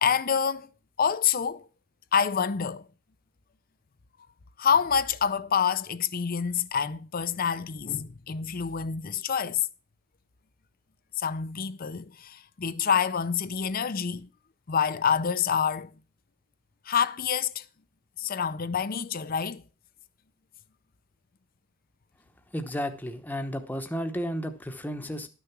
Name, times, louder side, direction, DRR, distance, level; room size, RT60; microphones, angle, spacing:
voice 1, 0.0-0.7 1.0-1.7 2.1-2.9 4.6-9.7 11.2-14.3 14.7-15.9 16.9-17.6 18.2-19.6, left 7 dB, 45° left, 0.5 m, -27 dB
voice 2, 22.5-25.3, equal, 10° left, 0.9 m, -33 dB
12.5 x 6.7 x 6.0 m
head